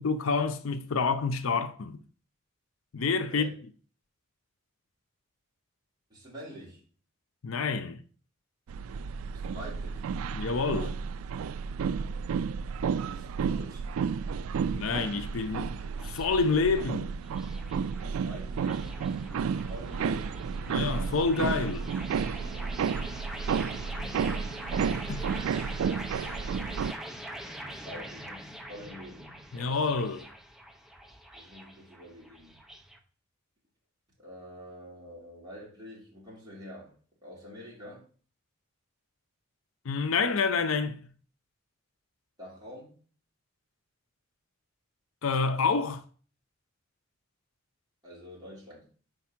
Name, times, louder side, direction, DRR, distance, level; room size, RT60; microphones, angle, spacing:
voice 1, 0.0-2.0 2.9-3.5 7.4-8.0 10.3-11.0 14.7-15.7 16.0-17.2 20.7-21.9 25.1-25.3 29.5-30.3 39.8-41.0 45.2-46.0, left 4 dB, 75° left, 0.5 m, -28 dB
voice 2, 6.1-6.8 9.3-10.1 13.0-13.9 18.0-20.4 23.4-24.5 26.3-26.6 27.5-30.0 31.3-32.6 34.2-38.0 42.4-43.0 48.0-48.9, equal, 20° right, 3.4 m, -47 dB
sound 1, 8.7-26.9, right 6 dB, 85° right, 0.3 m, -32 dB
sound 2, 15.9-33.0, right 1 dB, ahead, 0.6 m, -44 dB
5.2 x 4.7 x 5.8 m
head